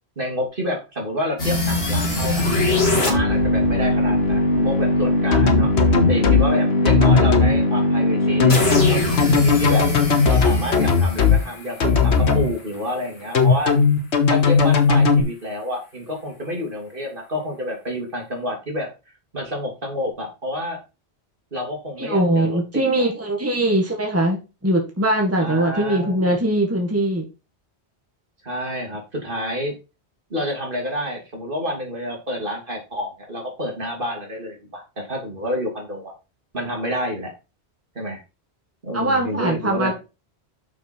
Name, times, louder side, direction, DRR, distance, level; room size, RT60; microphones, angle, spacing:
voice 1, 0.2-2.5 3.0-9.8 10.2-13.7 14.3-18.9 19.3-20.8 21.5-22.8 25.4-26.4 28.4-29.7 30.3-36.1 36.5-37.3 37.9-38.2 38.8-39.9, equal, 55° right, 0 dB, 2.9 m, -29 dB
sound 1, 1.4-12.3, left 1 dB, 70° left, 2.3 m, -21 dB
sound 2, 5.3-6.4 6.8-7.5 8.4-11.4 11.8-12.5 13.3-15.2, left 5 dB, 90° left, 1.5 m, -17 dB
voice 2, 22.0-27.2 38.9-39.9, right 1 dB, 15° right, 1 dB, 1.8 m, -21 dB
6.5 x 6.4 x 4.5 m, 0.29 s
omnidirectional pair, 1.1 m